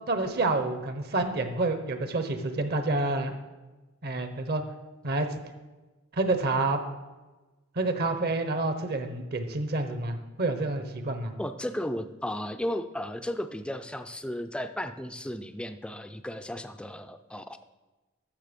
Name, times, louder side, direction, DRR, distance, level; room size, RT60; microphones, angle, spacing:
voice 1, 0.1-3.3 4.0-4.6 5.0-5.3 6.1-6.8 7.8-11.3, right 2 dB, 50° right, 8 dB, 0.9 m, -28 dB
voice 2, 11.4-17.6, left 1 dB, 5° left, 9 dB, 0.4 m, -34 dB
13.0 x 6.5 x 5.2 m, 1.2 s
head